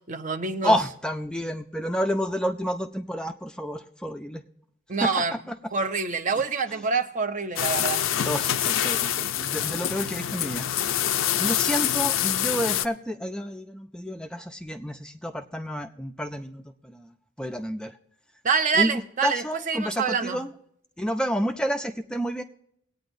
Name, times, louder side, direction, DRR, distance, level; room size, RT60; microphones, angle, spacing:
voice 1, 0.1-0.7 4.9-5.4 5.7-8.0 18.4-20.4, right 5 dB, 40° right, 10 dB, 0.6 m, -26 dB
voice 2, 0.6-4.4 5.0-5.2 5.5-5.6 8.2-11.0 11.3-17.1 17.4-18.0 18.7-20.5 21.0-22.4, equal, 5° left, 6 dB, 0.4 m, -29 dB
sound 1, 7.6-12.9, left 10 dB, 70° left, 0.5 m, -26 dB
20.5 x 8.9 x 2.6 m, 0.70 s
head